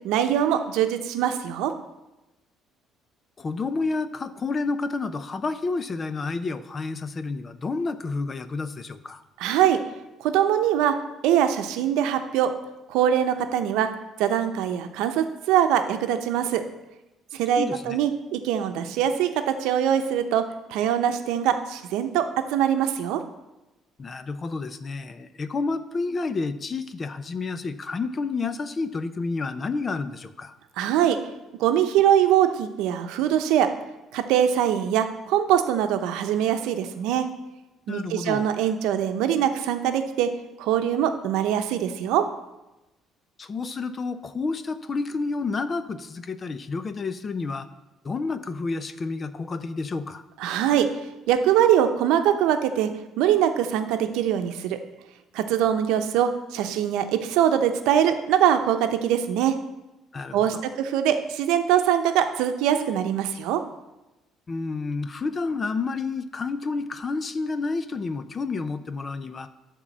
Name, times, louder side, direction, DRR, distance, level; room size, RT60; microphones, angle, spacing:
voice 1, 0.0-1.7 9.4-9.8 10.2-10.9 11.2-12.5 12.9-13.9 14.2-16.6 17.3-20.4 20.7-22.2 22.5-23.2 30.8-31.2 31.6-33.7 34.1-37.3 37.9-40.3 40.6-42.2 50.4-50.9 51.3-52.9 53.2-54.8 55.3-59.6 60.3-63.6, right 10 dB, 90° right, 8 dB, 0.7 m, -22 dB
voice 2, 3.4-9.2 17.6-18.0 24.0-30.6 37.9-38.5 43.4-47.7 48.0-50.2 60.1-60.7 64.5-69.5, left 3 dB, 25° left, 13 dB, 0.4 m, -30 dB
11.0 x 3.7 x 7.3 m, 1.0 s
cardioid pair, 155°, 0 cm